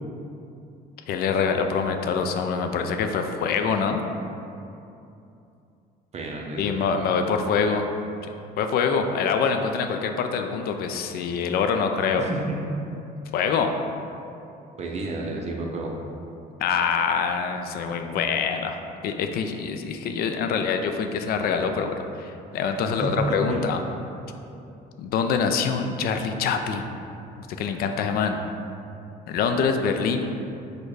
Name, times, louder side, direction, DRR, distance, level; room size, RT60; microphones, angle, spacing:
voice 1, 1.1-4.0 6.6-7.9 8.6-12.2 13.3-13.7 16.6-18.8 19.0-23.8 25.0-26.9 27.6-28.4 29.3-30.3, left 6 dB, 65° left, 6 dB, 0.4 m, -25 dB
voice 2, 6.1-6.8 12.1-12.7 14.8-15.9 23.0-23.6, right 2 dB, 40° right, 0 dB, 0.6 m, -30 dB
4.4 x 2.2 x 4.7 m, 2.7 s
cardioid pair, 110°, 17 cm